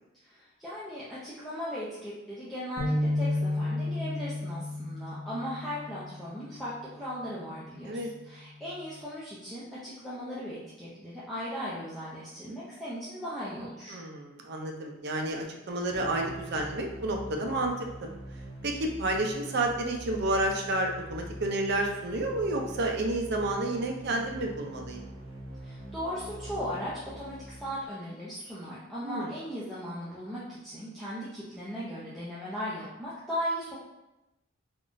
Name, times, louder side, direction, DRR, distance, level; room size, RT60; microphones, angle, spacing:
voice 1, 0.2-14.0 25.6-33.8, equal, ahead, -11 dB, 0.5 m, -37 dB
sound 1, 2.8-6.3, left 1 dB, 35° right, 0.9 m, -31 dB
voice 2, 13.9-17.7 18.6-25.0 29.0-29.3, right 2 dB, 55° right, 2 dB, 0.5 m, -30 dB
sound 2, 15.9-27.9, right 1 dB, 80° right, 0.8 m, -43 dB
3.5 x 2.4 x 2.5 m, 0.96 s
head